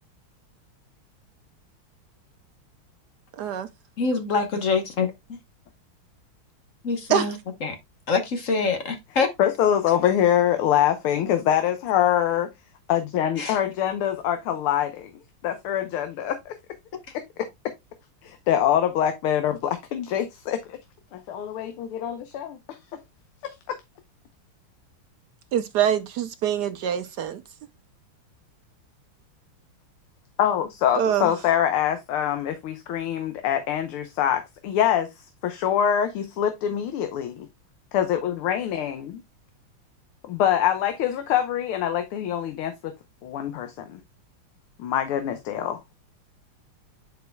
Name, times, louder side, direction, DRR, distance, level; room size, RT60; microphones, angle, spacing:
voice 1, 3.4-3.7 7.1-7.3 25.5-27.4 30.9-31.3, right 9 dB, 75° right, 0.9 m, -24 dB
voice 2, 4.0-5.4 6.8-7.4 7.6-7.8 8.1-9.3 13.4-13.6, left 4 dB, 45° left, 1.2 m, -25 dB
voice 3, 9.4-12.5 12.9-15.1 15.4-16.6 18.2-20.8 21.1-22.8 23.7-23.8 30.4-35.1 35.4-37.5 37.9-39.0 40.3-42.9 43.2-44.0 44.8-45.9, left 10 dB, 80° left, 1.7 m, -24 dB
10.5 x 4.7 x 2.2 m
omnidirectional pair, 2.4 m